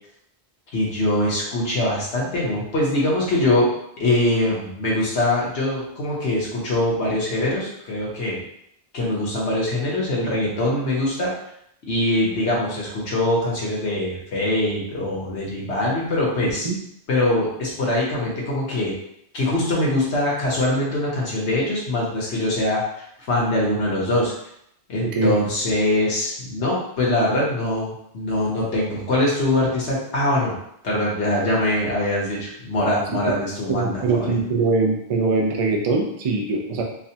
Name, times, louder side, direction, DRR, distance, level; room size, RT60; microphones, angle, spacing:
voice 1, 0.7-3.7 4.0-8.4 8.9-11.3 11.9-16.7 17.1-18.9 19.3-22.8 23.3-24.3 24.9-30.5 30.8-34.4, left 1 dB, 80° left, -4 dB, 1.4 m, -23 dB
voice 2, 25.0-25.3 33.7-36.8, right 3 dB, 45° right, 1 dB, 0.5 m, -22 dB
4.7 x 2.2 x 2.8 m, 0.75 s
omnidirectional pair, 1.1 m